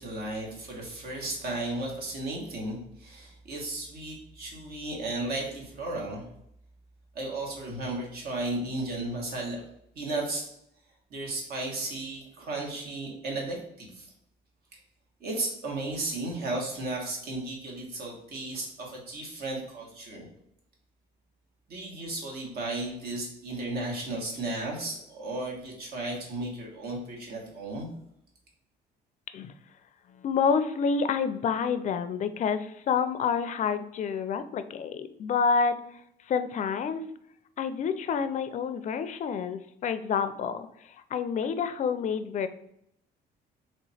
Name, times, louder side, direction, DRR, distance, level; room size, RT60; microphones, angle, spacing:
voice 1, 0.0-6.2 7.1-9.6 9.9-10.4 11.1-14.1 15.2-20.3 21.7-27.9, right 2 dB, 60° right, -1 dB, 1.5 m, -34 dB
voice 2, 30.2-35.8 36.3-37.0 37.6-42.5, left 6 dB, 45° left, 11 dB, 0.4 m, -28 dB
3.3 x 2.9 x 4.1 m, 0.76 s
cardioid pair, 105°, 18 cm